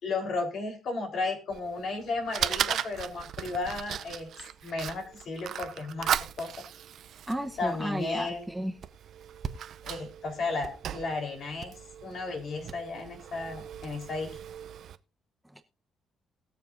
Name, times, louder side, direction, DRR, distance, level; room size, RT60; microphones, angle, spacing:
voice 1, 0.0-4.3 4.6-6.1 6.4-6.5 7.6-8.4 9.8-14.4, left 3 dB, 65° left, 3 dB, 3.9 m, -34 dB
Fire, 1.5-15.0, right 9 dB, 70° right, 0.5 m, -37 dB
voice 2, 7.3-8.7 15.5-15.6, right 1 dB, 5° right, 7 dB, 0.9 m, -33 dB
sound 1, 8.8-8.9 9.4-9.6 9.9-10.2 10.4-11.3 11.6-11.9 12.4-12.8 13.1-13.2 13.4-13.5 13.8-14.4, right 6 dB, 50° right, 1.0 m, -40 dB
20.0 x 7.0 x 2.6 m, 0.34 s
cardioid pair, 90°, 0 cm